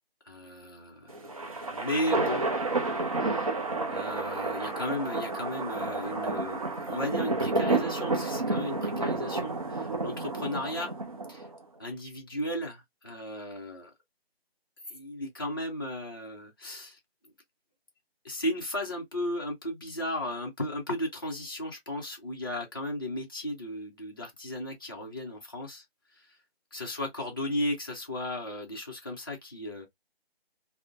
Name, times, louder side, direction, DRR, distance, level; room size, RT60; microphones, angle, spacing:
voice 1, 0.2-1.1 1.7-2.4 3.2-3.5 3.9-10.9 11.3-11.5 11.8-13.9 14.9-17.3 18.2-25.8 26.1-26.4 26.7-29.9, left 1 dB, 20° left, 0.6 m, -35 dB
sound 1, 1.1-11.6, right 3 dB, 35° right, 0.6 m, -30 dB
3.5 x 2.1 x 2.4 m
figure-of-eight pair, 160°, 31 cm